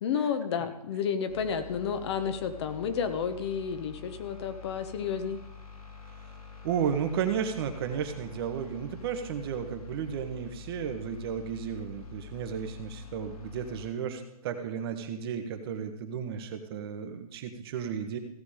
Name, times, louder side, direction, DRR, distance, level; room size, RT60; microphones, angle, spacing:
voice 1, 0.0-5.4, left 7 dB, 45° left, 8 dB, 1.3 m, -31 dB
sound 1, 1.3-13.9, left 6 dB, 65° left, 3.2 m, -46 dB
voice 2, 6.6-18.2, right 7 dB, 40° right, 6 dB, 1.4 m, -33 dB
16.5 x 7.0 x 5.1 m, 0.84 s
figure-of-eight pair, 130°, 20 cm